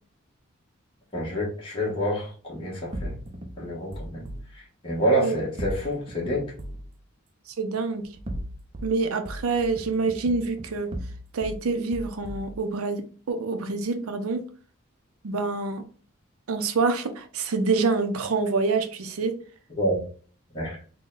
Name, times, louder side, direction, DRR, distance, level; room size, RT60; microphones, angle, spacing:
voice 1, 1.1-3.1 3.6-4.3 4.8-6.5 19.8-20.0 20.5-20.8, equal, 25° left, 1.2 m, -27 dB
sound 1, 2.9-4.4 5.6-6.9 8.1-8.9 9.3-11.6 11.9-12.6, equal, 25° right, 0.4 m, -37 dB
voice 2, 7.6-8.0 8.8-10.9 11.3-14.4 15.2-15.8 16.5-19.4, right 4 dB, 90° right, 0.6 m, -26 dB
3.8 x 2.2 x 3.8 m
head